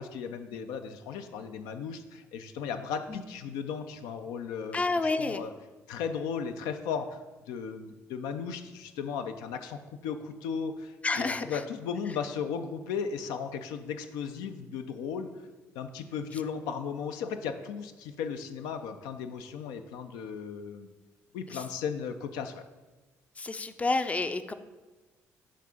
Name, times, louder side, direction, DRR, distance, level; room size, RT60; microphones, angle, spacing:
voice 1, 0.0-4.8 5.2-5.5 5.9-15.3 15.7-20.9 21.3-22.6, left 6 dB, 80° left, 8 dB, 0.4 m, -36 dB
voice 2, 4.7-5.4 11.0-11.6 23.4-24.5, left 3 dB, 20° left, 10 dB, 0.4 m, -29 dB
7.3 x 2.5 x 5.6 m, 1.2 s
supercardioid pair, 60°, 7 cm